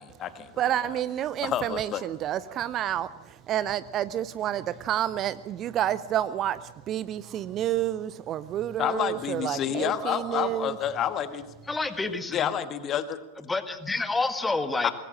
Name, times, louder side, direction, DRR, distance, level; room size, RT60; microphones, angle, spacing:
voice 1, 0.0-1.0 1.4-2.0 8.8-11.5 12.3-13.2 14.8-14.9, left 9 dB, 30° left, 1.4 m, -29 dB
voice 2, 0.6-10.8, right 11 dB, 30° right, 0.6 m, -29 dB
voice 3, 11.7-12.5 13.5-14.9, left 3 dB, 10° left, 1.8 m, -28 dB
23.5 x 19.5 x 6.4 m
figure-of-eight pair, 90°, 0 cm